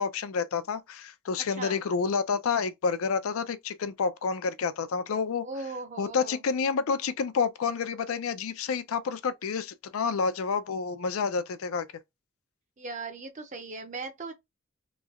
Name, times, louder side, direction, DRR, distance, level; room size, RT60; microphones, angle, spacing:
voice 1, 0.0-5.5 6.0-11.9, left 5 dB, 80° left, 0.4 m, -29 dB
voice 2, 1.3-1.8 5.4-6.4 12.8-14.3, right 3 dB, 35° right, 0.6 m, -38 dB
3.1 x 2.7 x 2.4 m
head